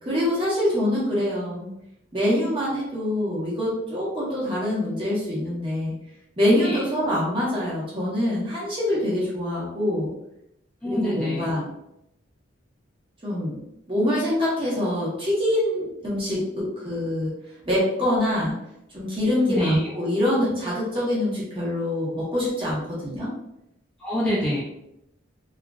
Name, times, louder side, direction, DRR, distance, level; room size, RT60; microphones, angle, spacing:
voice 1, 0.0-1.7 2.1-5.9 6.4-10.1 10.8-11.7 13.2-13.6 13.9-17.3 17.6-18.5 18.9-23.3, left 1 dB, 25° right, -7 dB, 0.9 m, -25 dB
voice 2, 10.8-11.5 19.5-19.8 24.0-24.6, equal, 5° left, -7 dB, 0.3 m, -26 dB
2.8 x 2.4 x 2.3 m, 0.82 s
head